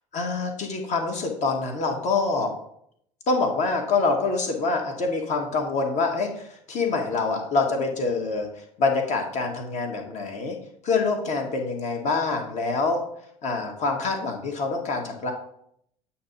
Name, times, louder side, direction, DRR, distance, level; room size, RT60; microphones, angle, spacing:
voice 1, 0.1-2.5 3.3-10.6 10.8-13.0 13.4-15.3, left 3 dB, 40° left, 3 dB, 1.4 m, -26 dB
8.3 x 2.9 x 5.7 m, 0.71 s
figure-of-eight pair, 60°, 18 cm